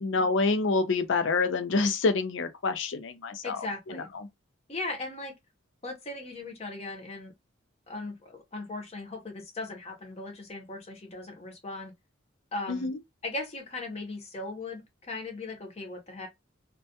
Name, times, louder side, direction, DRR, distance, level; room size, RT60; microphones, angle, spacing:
voice 1, 0.0-3.7 12.7-13.0, left 3 dB, 70° left, 0.5 m, -27 dB
voice 2, 3.4-4.1 4.7-5.3 5.8-7.3 7.9-11.9 12.5-12.9 13.2-16.3, left 2 dB, 30° left, 0.7 m, -38 dB
2.2 x 2.1 x 2.7 m
head